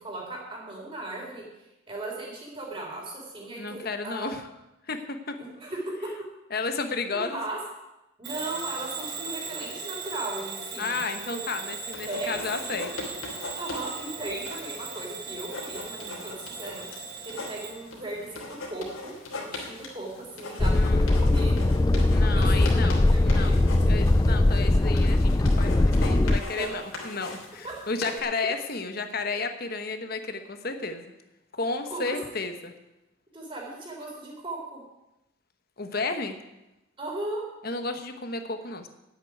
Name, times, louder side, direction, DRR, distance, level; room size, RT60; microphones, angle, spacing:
voice 1, 0.0-1.4 1.9-4.3 5.4-6.1 7.1-7.6 8.2-11.0 11.2-11.4 12.0-12.8 13.6-16.8 17.2-21.5 22.3-23.6 26.5-26.8 27.6-27.7 31.9-32.2 33.3-34.8 37.0-37.4, right 2 dB, 25° right, -2 dB, 4.1 m, -37 dB
voice 2, 3.5-4.5 4.9-5.4 6.5-7.4 10.8-12.9 20.7-21.1 22.1-23.6 23.9-31.0 31.5-32.7 35.8-36.4 37.6-38.9, left 3 dB, 45° left, 7 dB, 1.2 m, -32 dB
Bell / Alarm, 8.2-17.8, right 5 dB, 55° right, 4.3 m, -38 dB
sound 1, 11.9-28.2, left 2 dB, 80° left, 3.0 m, -41 dB
sound 2, 20.6-26.4, left 2 dB, 15° left, 0.4 m, -21 dB
9.8 x 8.4 x 9.4 m, 0.95 s
head